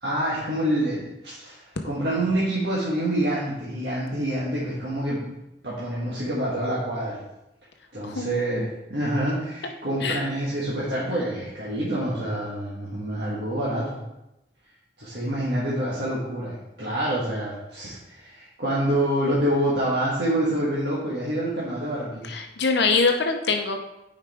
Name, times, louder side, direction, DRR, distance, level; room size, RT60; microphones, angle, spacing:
voice 1, 0.0-5.3 5.6-7.2 7.9-14.0 15.0-22.3, right 1 dB, 65° right, -7 dB, 1.5 m, -27 dB
voice 2, 8.0-8.7 10.0-10.2 22.2-23.8, left 4 dB, 70° left, 4 dB, 0.7 m, -24 dB
9.0 x 4.9 x 3.5 m, 0.93 s
head